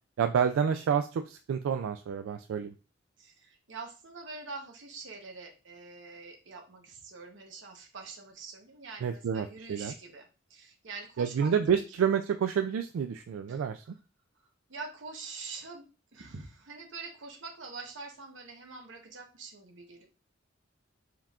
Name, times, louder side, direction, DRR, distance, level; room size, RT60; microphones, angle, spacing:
voice 1, 0.2-2.7 9.0-9.9 11.2-13.8, right 7 dB, 85° right, 7 dB, 0.3 m, -29 dB
voice 2, 3.2-11.7 13.5-14.0 14.7-20.1, right 4 dB, 65° right, 3 dB, 1.0 m, -45 dB
4.5 x 3.6 x 2.4 m, 0.33 s
head